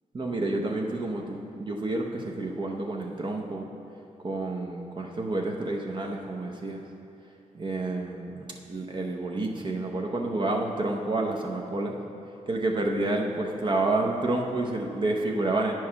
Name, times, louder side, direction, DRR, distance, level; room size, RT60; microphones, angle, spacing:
voice 1, 0.1-3.7 4.2-6.8 7.5-12.0 12.5-15.7, right 2 dB, 35° right, 1 dB, 0.7 m, -29 dB
8.6 x 4.6 x 5.6 m, 2.7 s
cardioid pair, 95°, 14 cm